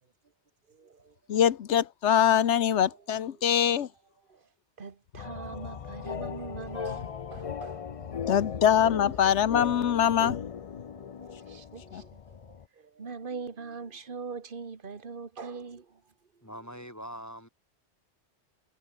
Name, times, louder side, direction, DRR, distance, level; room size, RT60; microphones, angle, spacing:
voice 1, 0.7-1.2 2.9-3.5 4.3-4.5 4.8-8.3 10.9-16.0 16.3-16.4, right 5 dB, 50° right, 1.8 m, -43 dB
voice 2, 1.3-3.9 8.2-10.4 11.9-12.0, left 9 dB, 80° left, 1.2 m, -23 dB
sound 1, 5.2-12.6, left 7 dB, 45° left, 0.5 m, -38 dB
voice 3, 16.4-17.5, equal, 15° left, 5.6 m, -42 dB
omnidirectional pair, 1.2 m